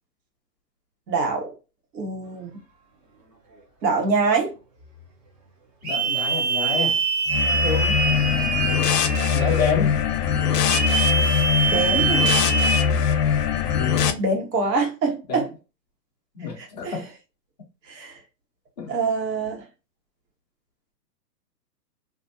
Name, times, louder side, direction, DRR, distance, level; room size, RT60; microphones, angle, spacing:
voice 1, 1.1-1.5 1.9-2.5 3.8-4.5 7.6-8.0 11.7-12.3 14.2-15.5 16.6-17.0 17.9-18.2 18.9-19.6, right 3 dB, 75° right, 1.3 m, -25 dB
voice 2, 5.8-7.0 8.0-10.0 13.7-14.1 15.3-15.5 16.3-17.1 18.8-18.9, left 6 dB, 30° left, 0.4 m, -29 dB
sound 1, 5.8-9.7 10.6-12.8, right 4 dB, 25° right, 0.6 m, -24 dB
sound 2, 7.3-14.1, left 7 dB, 70° left, 0.6 m, -22 dB
2.5 x 2.4 x 2.5 m
hypercardioid pair, 140°, 50 cm